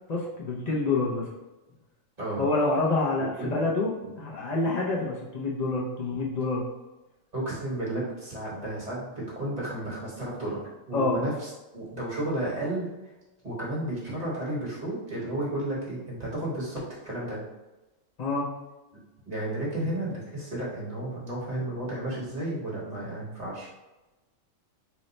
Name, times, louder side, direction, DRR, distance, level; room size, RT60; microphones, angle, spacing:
voice 1, 0.1-1.2 2.4-3.9 4.2-6.6 10.9-11.2 18.2-18.5, left 3 dB, 60° left, -4 dB, 0.4 m, -27 dB
voice 2, 3.2-3.5 4.0-4.1 7.3-10.6 10.9-12.9 13.4-17.4 19.3-23.7, right 1 dB, 30° right, -6 dB, 1.1 m, -32 dB
2.9 x 2.1 x 4.0 m, 1.1 s
omnidirectional pair, 1.4 m